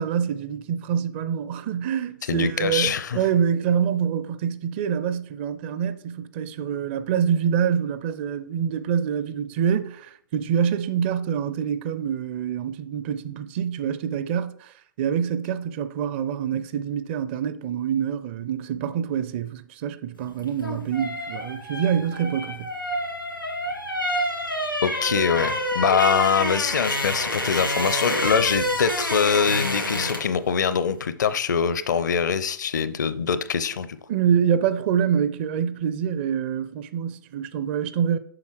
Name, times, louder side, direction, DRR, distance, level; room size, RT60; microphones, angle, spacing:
voice 1, 0.0-22.7 34.1-38.2, right 8 dB, 30° right, 0.5 m, -26 dB
voice 2, 2.3-3.2 24.8-33.9, left 7 dB, 60° left, 0.6 m, -23 dB
sound 1, 20.4-30.4 30.7-30.9, equal, 90° left, 2.1 m, -28 dB
7.7 x 5.5 x 4.5 m
figure-of-eight pair, 115°, 11 cm